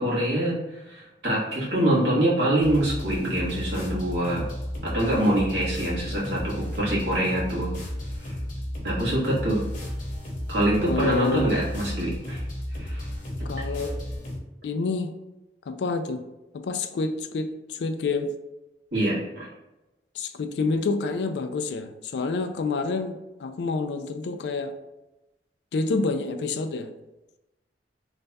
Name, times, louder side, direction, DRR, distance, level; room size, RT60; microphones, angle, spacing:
voice 1, 0.0-4.5 4.8-7.7 8.2-8.4 8.8-9.6 10.5-12.4 12.7-13.1 18.9-19.5, right 1 dB, 70° right, -6 dB, 1.4 m, -25 dB
sound 1, 2.6-14.4, equal, 45° left, 0.9 m, -33 dB
voice 2, 10.9-11.5 13.4-14.0 14.6-15.2 15.7-16.3 16.5-18.3 20.1-24.8 25.7-26.9, left 3 dB, 70° left, 8 dB, 0.3 m, -28 dB
3.2 x 2.3 x 4.0 m, 0.98 s
head